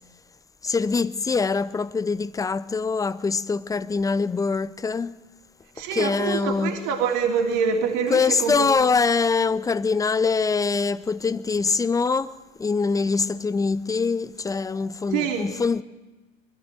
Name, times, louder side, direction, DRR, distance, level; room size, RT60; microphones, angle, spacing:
voice 1, 0.6-5.2 5.9-6.7 8.1-15.8, left 4 dB, 10° left, 0.6 m, -24 dB
voice 2, 5.7-8.7 15.1-15.4, right 6 dB, 50° right, 3.3 m, -25 dB
22.5 x 13.5 x 9.0 m
hypercardioid pair, 85°, 38 cm